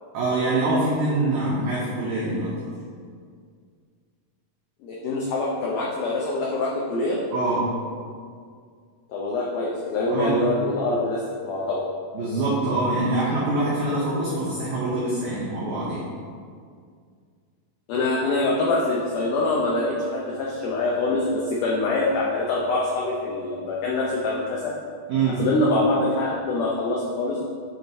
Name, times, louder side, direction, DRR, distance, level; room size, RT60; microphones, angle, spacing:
voice 1, 0.1-2.5 7.3-7.7 10.1-10.4 12.1-16.1 25.1-25.4, right 2 dB, 70° right, -7 dB, 1.9 m, -24 dB
voice 2, 4.8-7.2 9.1-11.9 17.9-24.8 25.4-27.4, left 2 dB, 85° left, -3 dB, 1.8 m, -24 dB
7.6 x 3.9 x 4.2 m, 2.1 s
omnidirectional pair, 4.6 m